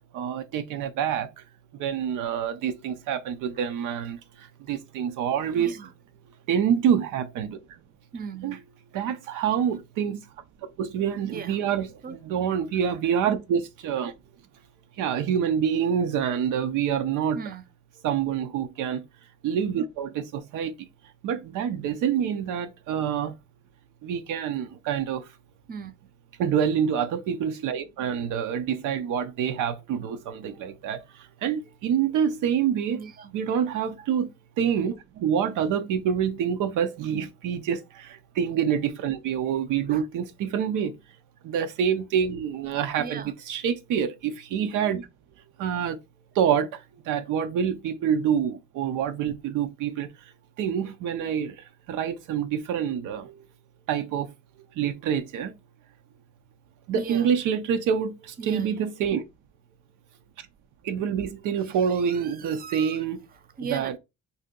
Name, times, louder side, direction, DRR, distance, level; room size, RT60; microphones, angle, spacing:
voice 1, 0.1-1.4 1.7-5.7 6.5-7.6 8.4-8.6 8.9-10.2 10.8-14.1 15.0-17.4 18.0-19.0 19.4-20.8 21.2-23.3 24.0-25.3 26.4-33.0 33.3-34.3 34.6-41.0 41.4-45.1 45.6-46.0 46.3-50.1 50.6-53.5 53.9-54.3 54.8-55.5 56.9-59.2 60.4-60.5 60.8-63.3 63.7-64.0, right 8 dB, 85° right, 0.6 m, -27 dB
voice 2, 5.5-5.9 8.1-8.6 11.2-11.6 12.0-12.4 17.3-17.7 25.7-25.9 32.9-33.3 34.0-34.1 37.1-37.3 39.9-40.1 43.0-43.3 56.9-57.3 58.4-58.9 61.6-63.0 63.3-64.0, right 5 dB, 30° right, 0.5 m, -39 dB
2.7 x 2.7 x 3.7 m
cardioid pair, 90°, 30 cm